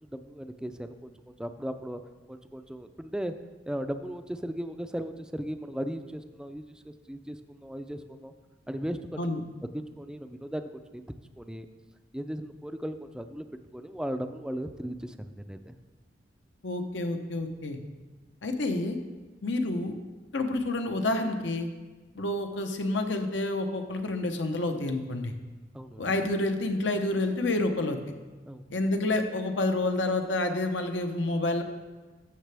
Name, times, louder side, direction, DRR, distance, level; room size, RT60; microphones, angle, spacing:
voice 1, 0.0-0.9 1.4-2.0 2.3-3.3 3.7-8.3 8.7-9.2 9.7-11.7 12.1-13.5 13.7-15.8 25.7-26.1 28.5-28.6, equal, 5° right, 9 dB, 0.4 m, -37 dB
voice 2, 16.6-17.8 18.4-19.0 19.4-19.9 20.3-21.7 22.2-25.3 26.0-28.0 28.7-31.6, left 2 dB, 85° left, 6 dB, 0.9 m, -28 dB
13.5 x 6.6 x 3.4 m, 1.3 s
head